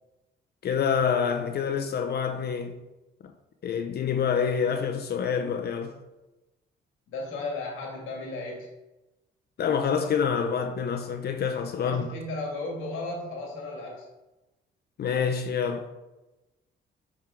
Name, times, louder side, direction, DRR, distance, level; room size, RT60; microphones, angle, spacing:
voice 1, 0.6-2.8 3.2-3.3 3.6-5.9 9.6-12.1 15.0-15.9, left 7 dB, 55° left, 0.6 m, -27 dB
voice 2, 7.1-8.7 11.8-14.1, left 2 dB, 90° left, 1.9 m, -35 dB
9.3 x 3.6 x 3.7 m
cardioid pair, 90°, 20 cm